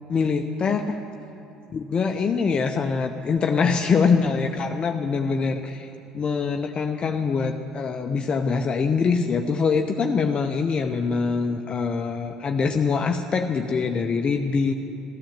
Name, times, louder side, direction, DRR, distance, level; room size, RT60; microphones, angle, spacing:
voice 1, 0.1-1.0 1.7-5.9 6.1-14.7, left 5 dB, 35° left, 5 dB, 0.8 m, -24 dB
13.5 x 13.0 x 7.4 m, 2.8 s
hypercardioid pair, 65°, 3 cm